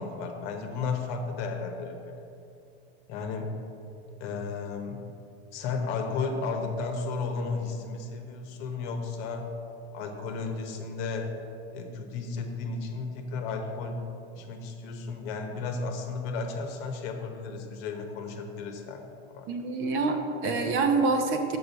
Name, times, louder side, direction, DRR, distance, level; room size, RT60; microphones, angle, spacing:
voice 1, 0.0-2.0 3.1-3.5 4.2-5.0 5.5-9.5 9.9-11.3 11.7-14.0 14.3-19.5, left 4 dB, 45° left, 4 dB, 1.1 m, -33 dB
voice 2, 19.5-21.6, right 3 dB, 35° right, 5 dB, 0.8 m, -26 dB
6.3 x 6.0 x 7.0 m, 2.7 s
supercardioid pair, 145°, 34 cm